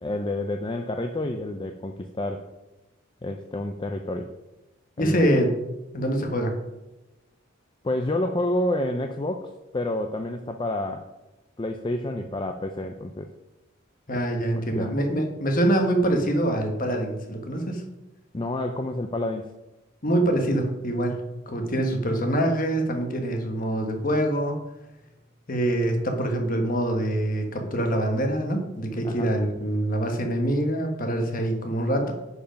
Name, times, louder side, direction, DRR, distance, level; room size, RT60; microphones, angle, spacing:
voice 1, 0.0-2.5 3.2-4.3 5.0-5.3 7.8-11.1 11.6-13.3 14.1-14.2 14.6-14.9 18.3-19.5 29.0-29.3, left 1 dB, 20° left, 5 dB, 0.4 m, -29 dB
voice 2, 5.0-5.5 5.9-6.6 14.1-17.8 20.0-21.2 21.5-24.6 25.5-32.1, right 1 dB, 40° left, 4 dB, 1.3 m, -25 dB
10.0 x 5.0 x 5.1 m, 1.0 s
head